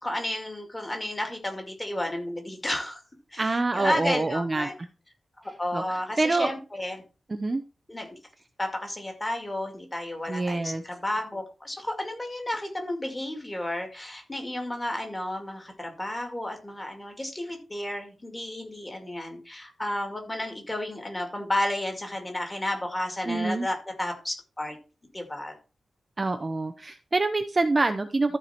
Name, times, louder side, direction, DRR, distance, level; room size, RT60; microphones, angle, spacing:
voice 1, 0.0-3.0 3.3-4.7 5.6-7.0 7.9-8.1 8.6-24.8 25.1-25.6, left 1 dB, 15° left, 3 dB, 2.3 m, -32 dB
voice 2, 3.4-4.7 5.7-5.8 6.2-6.5 7.3-7.6 10.3-10.8 23.3-23.7 26.2-28.4, right 3 dB, 25° right, 7 dB, 0.7 m, -26 dB
14.0 x 4.7 x 4.4 m, 0.32 s
wide cardioid pair, 165°, 0 cm